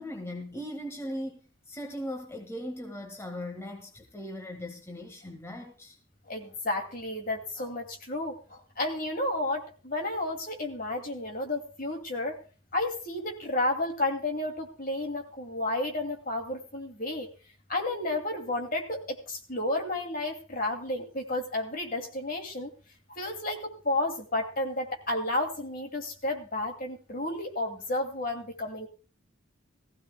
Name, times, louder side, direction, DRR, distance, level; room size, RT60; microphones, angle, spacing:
voice 1, 0.0-1.4 1.7-6.0, equal, 15° left, 2 dB, 1.6 m, -38 dB
voice 2, 6.3-12.4 12.7-17.3 17.7-22.7 23.1-28.9, left 2 dB, 45° left, 4 dB, 2.4 m, -32 dB
19.5 x 15.5 x 2.2 m, 0.38 s
head